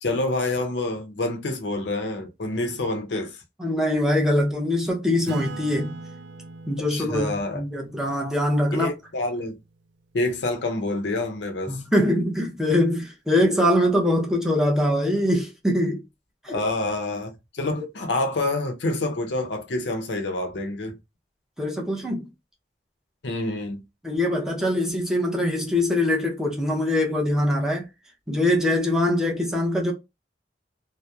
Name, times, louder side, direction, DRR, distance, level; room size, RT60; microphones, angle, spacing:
voice 1, 0.0-3.4 6.9-7.6 8.7-9.6 10.1-11.8 16.5-21.0 23.2-23.8, left 2 dB, 75° left, 0.6 m, -27 dB
voice 2, 3.6-5.9 6.7-8.9 11.7-16.0 16.4-16.6 21.6-22.2 24.0-27.8 28.3-29.9, left 1 dB, 5° right, 0.5 m, -23 dB
Acoustic guitar / Strum, 5.3-10.2, right 3 dB, 80° right, 0.4 m, -41 dB
2.8 x 2.0 x 2.2 m
head